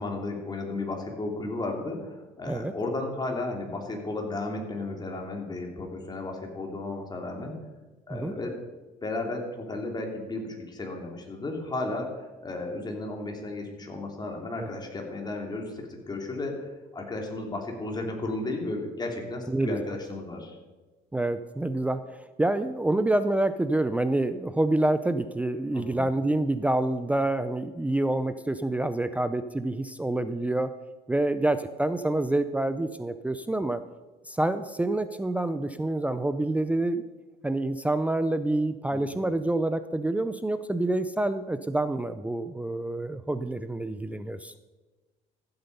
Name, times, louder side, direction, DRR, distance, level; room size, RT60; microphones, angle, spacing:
voice 1, 0.0-7.6 8.1-8.6 9.0-20.6 25.7-26.1 38.9-39.3, left 2 dB, 25° left, 2 dB, 2.8 m, -34 dB
voice 2, 19.5-19.8 21.1-30.7 31.1-33.8 34.3-37.0 37.4-44.5, right 2 dB, 10° right, 11 dB, 0.5 m, -27 dB
14.5 x 7.9 x 5.4 m, 1.2 s
cardioid pair, 110°, 17 cm